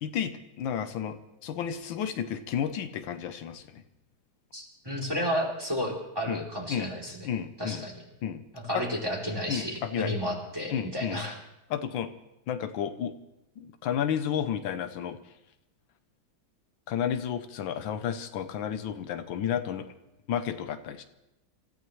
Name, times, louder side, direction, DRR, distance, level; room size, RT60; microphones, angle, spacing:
voice 1, 0.0-3.8 6.3-6.4 6.7-6.9 7.2-7.9 8.2-8.4 8.7-8.8 9.5-10.1 10.7-11.2 11.7-12.1 12.5-13.1 13.6-15.2 16.9-19.9 20.3-21.0, left 9 dB, 85° left, 9 dB, 1.5 m, -32 dB
voice 2, 4.5-7.3 7.6-8.0 8.5-11.4, equal, 10° right, -1 dB, 2.9 m, -32 dB
27.5 x 14.5 x 3.1 m, 0.91 s
omnidirectional pair, 2.1 m